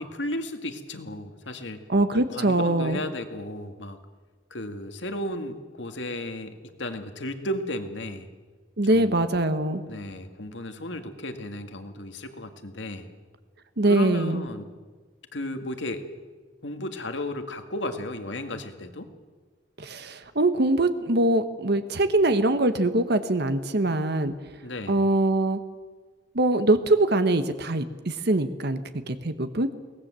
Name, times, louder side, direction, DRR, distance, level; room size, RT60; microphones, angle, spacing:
voice 1, 0.0-1.8 2.1-4.0 4.5-8.3 8.9-9.2 9.8-13.1 13.8-14.7 15.3-16.1 16.6-19.1 24.6-25.0, left 1 dB, 75° left, 7 dB, 2.0 m, -34 dB
voice 2, 1.9-3.0 8.8-9.8 13.8-14.4 19.8-24.3 24.9-25.6 26.3-28.8 29.1-29.7, right 2 dB, 60° right, 10 dB, 1.2 m, -23 dB
22.5 x 18.5 x 7.6 m, 1.4 s
head